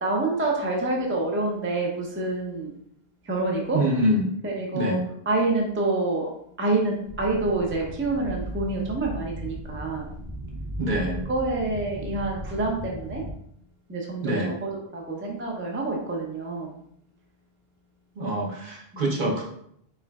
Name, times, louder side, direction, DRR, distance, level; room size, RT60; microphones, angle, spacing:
voice 1, 0.0-2.7 3.2-3.8 4.4-5.0 5.3-6.3 6.6-10.1 11.3-13.2 13.9-16.7 18.9-19.0, right 2 dB, 15° right, -1 dB, 0.5 m, -27 dB
voice 2, 3.7-4.3 4.7-5.0 10.8-11.2 14.2-14.5 18.2-19.4, right 1 dB, 50° right, -2 dB, 0.9 m, -25 dB
sound 1, 7.0-13.3, equal, 80° right, 1.1 m, -37 dB
4.5 x 3.7 x 2.3 m, 0.70 s
omnidirectional pair, 1.1 m